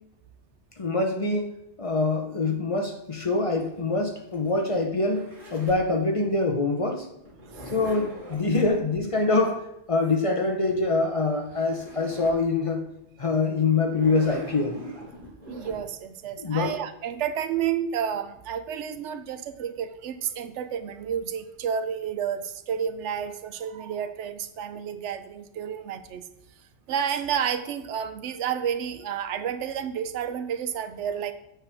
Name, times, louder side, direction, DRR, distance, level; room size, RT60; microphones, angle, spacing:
voice 1, 0.8-1.5 1.8-7.1 7.7-9.6 9.9-12.9 13.2-14.8 16.4-16.8, left 3 dB, 35° left, 2 dB, 0.7 m, -25 dB
Zipper (clothing), 3.2-5.9 7.2-8.5 11.1-11.2 11.4-12.4 12.9-13.0 13.8-15.8, equal, 40° right, 3.1 m, -42 dB
voice 2, 15.5-26.2 26.9-31.3, right 8 dB, 90° right, 10 dB, 0.9 m, -30 dB
7.4 x 5.2 x 3.4 m, 0.82 s
omnidirectional pair, 1.2 m